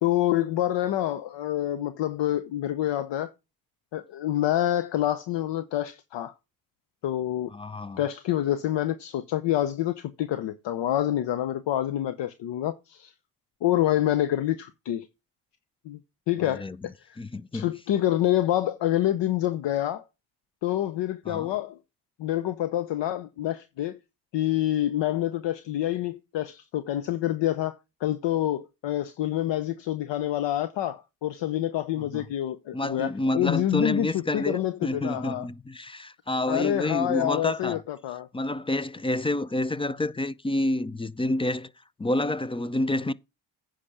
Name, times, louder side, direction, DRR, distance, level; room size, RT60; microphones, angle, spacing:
voice 1, 0.0-3.3 3.9-6.3 7.0-7.5 8.0-13.1 13.6-15.1 15.8-16.0 16.3-17.2 17.5-20.0 20.6-21.8 22.2-24.0 24.3-35.5 36.5-38.3, left 12 dB, 60° left, 0.8 m, -27 dB
voice 2, 7.5-8.0 16.4-16.8 17.2-17.7 21.3-21.5 32.1-32.2 32.7-37.8 38.3-41.7 42.0-43.1, left 1 dB, 10° left, 0.4 m, -28 dB
9.7 x 5.1 x 5.8 m
hypercardioid pair, 50°, 49 cm